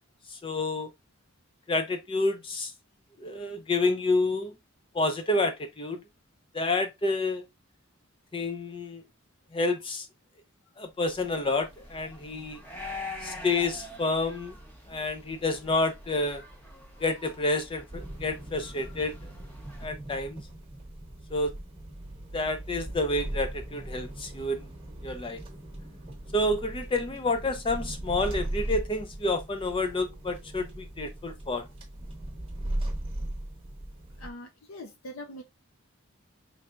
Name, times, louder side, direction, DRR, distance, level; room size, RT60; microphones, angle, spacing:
voice 1, 0.3-0.9 1.7-2.7 3.2-4.5 4.9-6.0 6.5-7.4 8.3-9.0 9.5-10.1 10.8-12.6 13.2-14.5 14.9-16.4 17.0-19.2 19.8-20.4 21.3-21.5 22.3-24.7 25.0-25.4 26.3-31.7, left 2 dB, 25° left, 0.4 m, -29 dB
sound 1, 11.1-19.9, left 2 dB, 10° left, 0.8 m, -44 dB
sound 2, 17.9-34.3, right 1 dB, 25° right, 1.0 m, -38 dB
voice 2, 34.1-35.4, left 1 dB, 65° left, 0.6 m, -42 dB
4.4 x 3.3 x 2.4 m
head